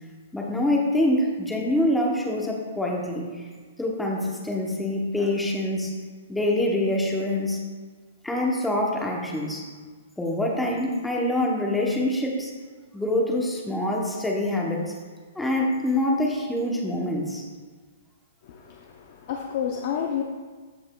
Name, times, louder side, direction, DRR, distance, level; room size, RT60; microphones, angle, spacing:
voice 1, 0.3-3.5 3.8-5.9 6.3-7.6 8.2-9.6 10.2-12.5 12.9-14.9 15.4-17.4, left 1 dB, 5° left, -1 dB, 0.7 m, -25 dB
voice 2, 18.4-20.2, left 8 dB, 35° left, 1 dB, 0.5 m, -30 dB
14.0 x 5.5 x 2.2 m, 1.5 s
hypercardioid pair, 175°, 0 cm